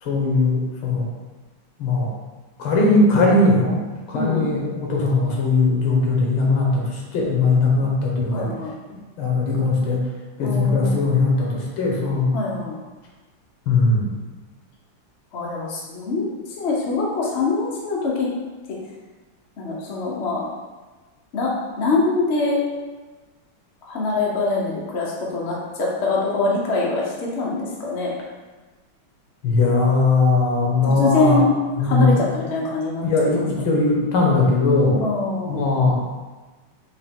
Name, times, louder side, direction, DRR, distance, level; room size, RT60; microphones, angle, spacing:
voice 1, 0.0-1.1 1.8-2.1 2.6-3.8 4.1-8.5 8.9-10.1 10.4-12.4 13.7-14.1 29.4-31.4 31.8-32.3 33.0-35.1 35.5-36.0, left 3 dB, 85° left, -2 dB, 1.9 m, -19 dB
voice 2, 2.9-3.3 4.1-4.5 8.3-8.7 10.4-11.0 12.3-12.8 15.3-16.2 16.6-18.3 18.7-18.8 19.6-20.5 21.3-22.6 23.8-28.1 30.8-31.5 31.8-33.0 33.4-33.5 35.0-35.6, left 3 dB, 55° left, -4 dB, 0.7 m, -24 dB
4.6 x 3.1 x 3.5 m, 1.3 s
omnidirectional pair, 2.3 m